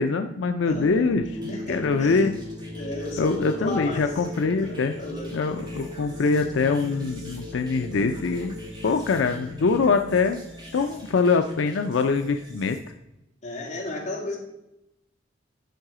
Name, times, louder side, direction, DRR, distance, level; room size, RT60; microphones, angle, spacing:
voice 1, 0.0-2.3 3.2-5.0 5.3-8.6 8.8-10.4 10.7-12.8, left 4 dB, 80° left, 6 dB, 0.4 m, -23 dB
voice 2, 0.6-1.1 1.5-2.3 2.8-4.0 4.6-5.3 5.7-5.9 13.4-14.4, left 1 dB, 40° left, -2 dB, 2.2 m, -33 dB
sound 1, 0.7-12.9, left 1 dB, 70° right, 2.9 m, -39 dB
sound 2, 1.4-12.0, equal, 25° right, 1.8 m, -48 dB
9.2 x 4.8 x 4.8 m, 0.91 s
head